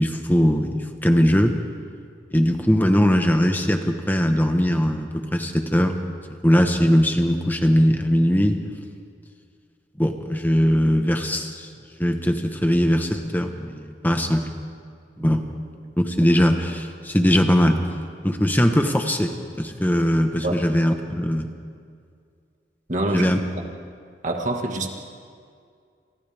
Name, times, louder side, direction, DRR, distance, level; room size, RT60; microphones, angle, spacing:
voice 1, 0.0-1.5 2.3-6.0 6.4-8.6 10.0-11.7 12.0-14.5 15.2-15.4 16.0-17.8 18.2-21.5 23.1-23.4, equal, 10° left, 5 dB, 1.3 m, -20 dB
voice 2, 22.9-23.3 23.6-23.7 24.2-24.9, right 2 dB, 45° right, 2 dB, 2.0 m, -26 dB
28.0 x 27.5 x 3.7 m, 2.2 s
head